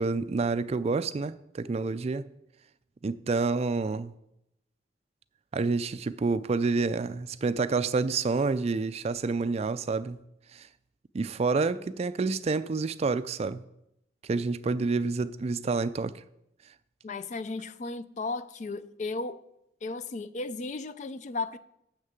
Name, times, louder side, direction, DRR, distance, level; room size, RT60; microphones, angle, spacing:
voice 1, 0.0-2.2 3.0-4.1 5.5-10.2 10.5-10.7 11.1-13.6 14.2-16.1, right 4 dB, 35° right, 0.3 m, -28 dB
voice 2, 17.0-19.4 19.8-21.6, left 3 dB, 40° left, 0.4 m, -35 dB
6.6 x 6.4 x 7.4 m
head